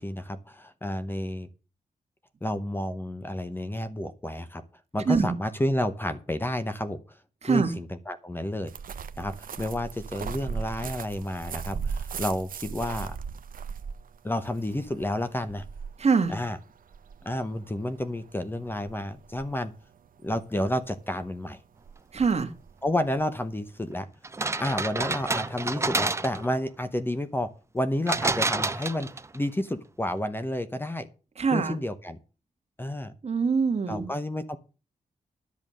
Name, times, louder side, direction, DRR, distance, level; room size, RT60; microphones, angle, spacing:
voice 1, 0.0-1.5 2.4-4.6 4.9-7.2 7.5-8.7 9.2-13.2 14.2-15.6 16.3-16.6 17.2-19.7 20.2-21.6 22.8-24.1 24.6-31.1 31.5-32.2 32.8-33.1 33.9-34.6, left 1 dB, 15° left, 0.8 m, -30 dB
voice 2, 7.4-7.7 16.0-16.4 22.1-22.5 31.4-31.8 33.2-34.1, right 5 dB, 50° right, 1.6 m, -24 dB
sound 1, 8.7-23.9, right 6 dB, 80° right, 0.7 m, -38 dB
sound 2, 24.2-26.6 28.1-29.4, right 3 dB, 20° right, 0.6 m, -28 dB
11.0 x 7.2 x 6.3 m
wide cardioid pair, 155°, 14 cm